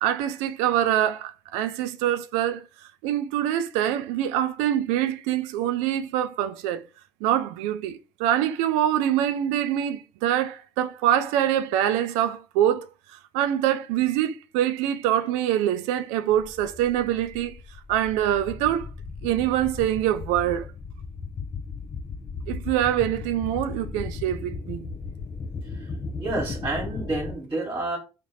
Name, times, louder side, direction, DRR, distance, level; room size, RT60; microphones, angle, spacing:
voice 1, 0.0-2.6 3.0-6.8 7.2-17.6 17.9-18.9 19.2-20.7 22.5-24.9, right 11 dB, 85° right, 0.4 m, -25 dB
sound 1, 16.3-27.3, left 4 dB, 40° left, 0.6 m, -36 dB
voice 2, 26.2-28.0, right 2 dB, 30° right, 1.4 m, -29 dB
3.3 x 2.4 x 4.0 m
hypercardioid pair, 60°, 12 cm